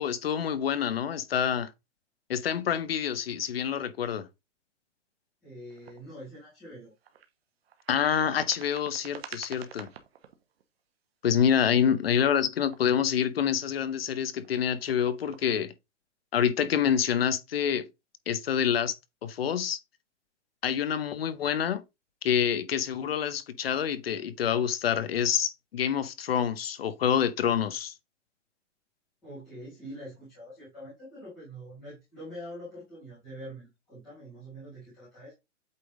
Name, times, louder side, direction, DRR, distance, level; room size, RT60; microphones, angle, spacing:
voice 1, 0.0-1.7 2.3-4.3 7.9-9.9 11.2-15.7 16.3-17.9 18.3-19.0 19.2-19.8 20.6-21.8 22.2-27.9, left 8 dB, 50° left, 0.8 m, -27 dB
voice 2, 5.4-6.9 11.7-11.8 29.2-35.3, equal, ahead, 0.4 m, -44 dB
sound 1, 5.7-6.0 7.0-7.3 7.6-10.6 11.8-13.2 14.0-15.6, right 8 dB, 55° right, 1.2 m, -48 dB
8.3 x 3.5 x 3.7 m
hypercardioid pair, 180°, 37 cm